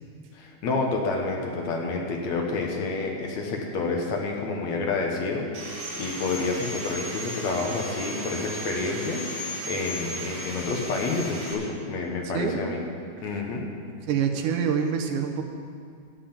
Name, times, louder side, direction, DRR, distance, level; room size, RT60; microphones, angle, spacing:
voice 1, 0.3-12.8 13.2-13.7, left 3 dB, 65° left, 1 dB, 2.5 m, -29 dB
Sawing, 5.5-11.5, equal, 60° right, 3.8 m, -36 dB
voice 2, 14.1-15.4, right 7 dB, 80° right, 4 dB, 2.5 m, -26 dB
11.5 x 7.6 x 8.8 m, 2.3 s
omnidirectional pair, 3.6 m